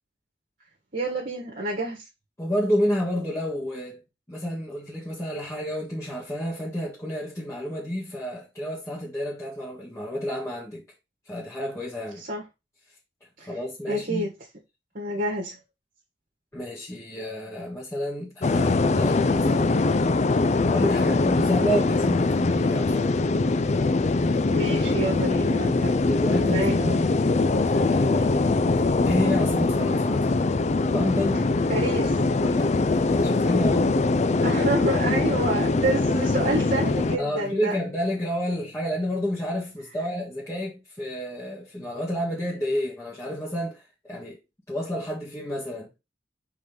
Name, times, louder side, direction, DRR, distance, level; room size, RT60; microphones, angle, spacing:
voice 1, 0.9-2.0 12.3-12.4 13.4-13.6 13.9-14.3 14.9-15.6 24.4-25.9 26.4-27.0 31.7-32.2 34.4-37.8, right 1 dB, 50° right, 1.6 m, -28 dB
voice 2, 2.4-4.0 4.3-10.8 11.3-12.2 13.4-14.3 16.5-20.1 20.6-23.2 25.8-27.0 27.7-28.4 29.0-30.4 30.9-31.5 32.4-33.9 37.2-44.4 44.7-45.9, equal, 15° left, 1.8 m, -30 dB
sound 1, 18.4-37.2, left 3 dB, 40° left, 0.4 m, -22 dB
5.5 x 3.9 x 5.2 m
head